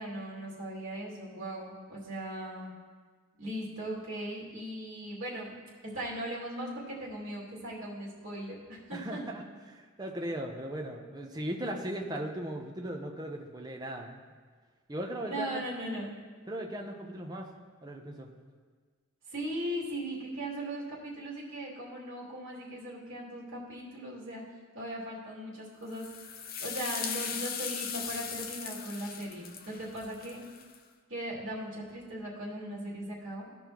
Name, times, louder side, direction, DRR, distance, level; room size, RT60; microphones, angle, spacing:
voice 1, 0.0-2.7 3.4-5.5 5.8-9.2 15.2-16.1 19.3-24.4 24.7-26.1 26.6-30.4 31.1-33.5, right 1 dB, 60° right, -6 dB, 2.5 m, -38 dB
voice 2, 8.9-9.4 9.7-14.2 14.9-15.6 16.5-17.5 17.8-18.3, right 1 dB, 20° right, 1 dB, 0.7 m, -37 dB
sound 1, 25.9-30.8, left 7 dB, 40° left, 0.6 m, -39 dB
16.0 x 5.3 x 3.0 m, 1.5 s
head